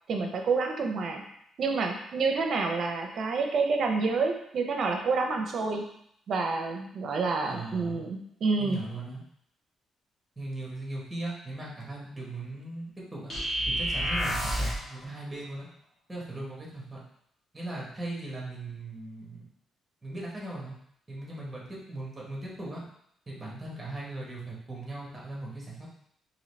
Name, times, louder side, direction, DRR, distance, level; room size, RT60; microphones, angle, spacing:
voice 1, 0.1-1.2 1.6-5.8 6.3-8.8, right 4 dB, 50° right, 3 dB, 0.6 m, -28 dB
voice 2, 7.5-8.0 8.6-9.2 10.4-13.2 13.7-15.7 16.1-17.0 17.5-19.4 20.0-20.7 21.1-22.8 23.3-25.9, right 2 dB, 10° right, -4 dB, 1.2 m, -38 dB
sound 1, 13.3-14.9, equal, 25° left, 1.4 m, -29 dB
3.9 x 2.8 x 3.2 m, 0.71 s
cardioid pair, 140°, 0 cm